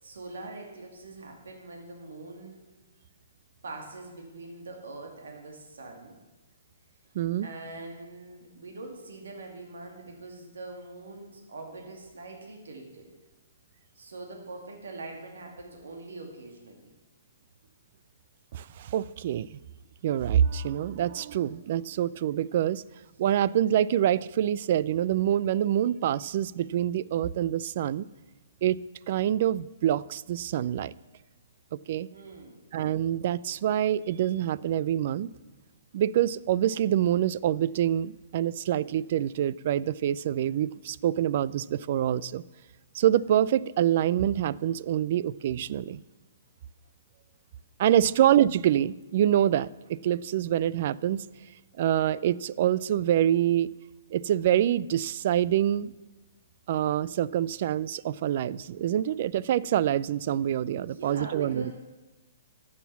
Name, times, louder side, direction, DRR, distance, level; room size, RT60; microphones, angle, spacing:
voice 1, 0.0-2.6 3.6-6.2 7.4-13.1 13.9-16.9 32.1-32.7 48.0-48.2 60.8-61.7, right 2 dB, 85° right, 2.4 m, -43 dB
voice 2, 7.1-7.5 18.5-19.5 20.0-22.8 23.2-28.1 28.6-28.8 29.1-30.9 31.7-32.1 32.7-35.3 35.9-42.4 42.9-46.0 47.8-51.2 51.8-53.7 54.1-55.9 56.7-61.7, right 11 dB, 50° right, 0.3 m, -26 dB
12.0 x 7.4 x 7.0 m
hypercardioid pair, 145°, 0 cm